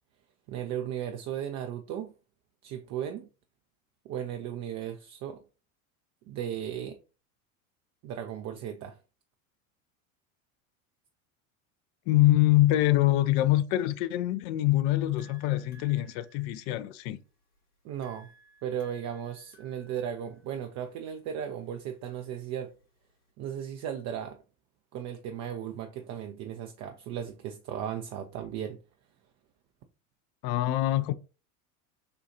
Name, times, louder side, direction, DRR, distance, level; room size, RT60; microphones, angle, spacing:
voice 1, 0.5-2.1 2.6-3.3 4.0-5.4 6.3-7.0 8.0-9.0 17.8-18.3 18.6-22.7 23.4-24.4 24.9-28.8, right 9 dB, 40° right, 0.6 m, -36 dB
voice 2, 12.1-17.2 30.4-31.1, left 15 dB, 45° left, 0.5 m, -24 dB
sound 1, 14.5-23.3, right 3 dB, 85° left, 2.1 m, -61 dB
6.7 x 2.4 x 2.7 m
hypercardioid pair, 80°, 43 cm